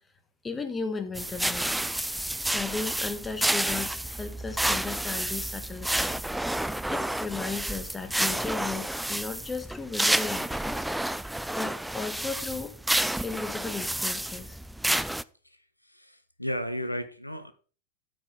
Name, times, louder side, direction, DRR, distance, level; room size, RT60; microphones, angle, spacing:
voice 1, 0.4-1.7 2.2-6.1 6.9-10.9 11.5-12.8 13.2-14.6, left 4 dB, 15° left, 8 dB, 1.4 m, -35 dB
sound 1, 1.2-15.2, right 1 dB, 5° right, 0.3 m, -30 dB
voice 2, 15.4-17.5, equal, 85° left, 12 dB, 0.7 m, -35 dB
13.0 x 4.9 x 5.3 m, 0.38 s
figure-of-eight pair, 90°, 0 cm